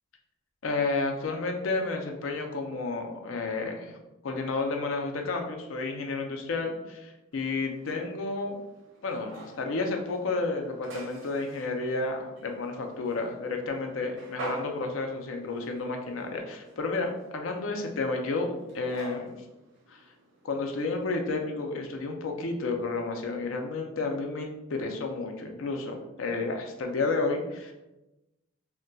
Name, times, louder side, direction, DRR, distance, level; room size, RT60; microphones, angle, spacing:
voice 1, 0.6-4.0 4.2-8.6 9.0-19.3 19.9-20.0 20.4-27.7, left 3 dB, 85° left, 3 dB, 0.5 m, -31 dB
sound 1, 7.3-21.1, right 2 dB, 70° right, 0.6 m, -47 dB
2.2 x 2.2 x 3.8 m, 0.97 s
head